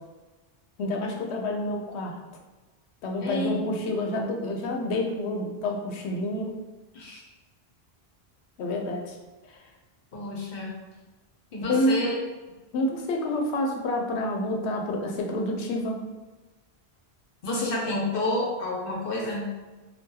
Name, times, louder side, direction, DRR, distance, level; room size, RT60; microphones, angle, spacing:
voice 1, 0.8-2.2 3.0-6.6 8.6-9.1 11.6-12.0 12.7-16.0, left 1 dB, 90° left, 2 dB, 0.9 m, -28 dB
voice 2, 3.2-3.6 6.9-7.2 10.1-10.7 11.5-12.1 17.4-19.5, left 2 dB, 60° left, -2 dB, 0.8 m, -29 dB
2.7 x 2.3 x 3.7 m, 1.2 s
omnidirectional pair, 1.1 m